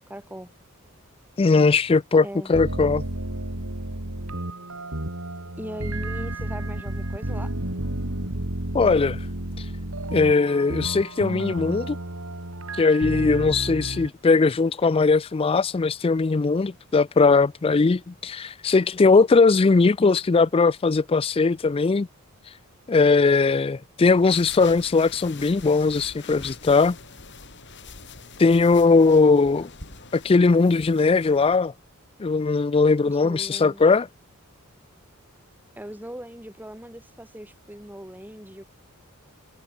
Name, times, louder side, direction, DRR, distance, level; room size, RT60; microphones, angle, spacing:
voice 1, 0.1-0.5 2.2-2.5 5.6-7.5 33.0-33.9 35.8-38.6, equal, 10° right, 7.7 m, -39 dB
voice 2, 1.4-3.0 8.7-9.2 10.1-12.0 12.8-22.1 22.9-27.0 28.4-29.7 30.1-31.7 32.2-34.1, left 4 dB, 25° left, 0.4 m, -19 dB
sound 1, 2.5-14.1, right 1 dB, 70° right, 4.8 m, -31 dB
sound 2, 24.1-31.6, left 4 dB, 55° left, 5.0 m, -44 dB
head